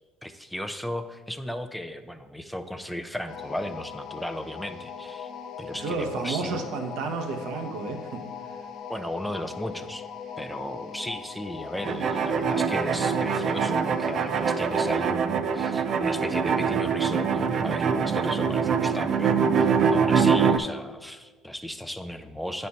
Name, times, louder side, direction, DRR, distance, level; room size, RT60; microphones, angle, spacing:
voice 1, 0.2-5.3 5.6-6.6 8.9-10.0 10.4-22.7, equal, ahead, 8 dB, 0.6 m, -35 dB
sound 1, 3.3-15.1, left 6 dB, 60° left, 0.7 m, -40 dB
voice 2, 5.7-8.6, right 4 dB, 70° right, 4 dB, 1.1 m, -32 dB
sound 2, 11.8-20.6, right 6 dB, 50° right, 0.5 m, -24 dB
9.7 x 4.4 x 4.2 m, 1.3 s
supercardioid pair, 95°, 0 cm